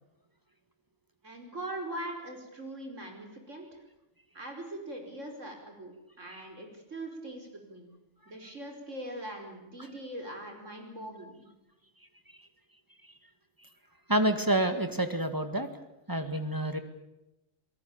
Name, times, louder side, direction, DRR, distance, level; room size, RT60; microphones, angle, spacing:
voice 1, 1.2-3.8 4.3-7.9 8.3-11.5, right 1 dB, 80° right, 4 dB, 5.4 m, -41 dB
voice 2, 14.1-15.7 16.1-16.8, right 1 dB, 15° right, 8 dB, 2.0 m, -28 dB
28.0 x 18.0 x 8.8 m, 0.93 s
omnidirectional pair, 1.3 m